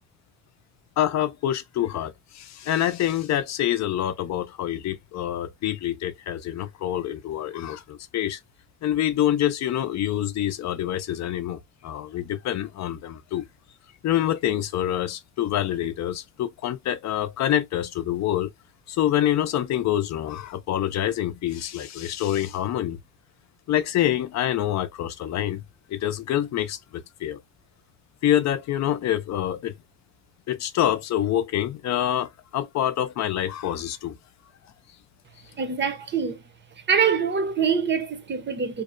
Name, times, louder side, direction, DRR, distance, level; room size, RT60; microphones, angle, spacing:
voice 1, 1.0-8.4 8.8-13.4 14.0-18.5 18.9-23.0 23.7-25.6 25.9-27.4 28.2-29.7 30.5-34.2, left 11 dB, 65° left, 0.5 m, -26 dB
voice 2, 35.6-36.4 36.9-38.8, right 6 dB, 35° right, 0.7 m, -24 dB
2.6 x 2.0 x 2.5 m
cardioid pair, 90°, 30 cm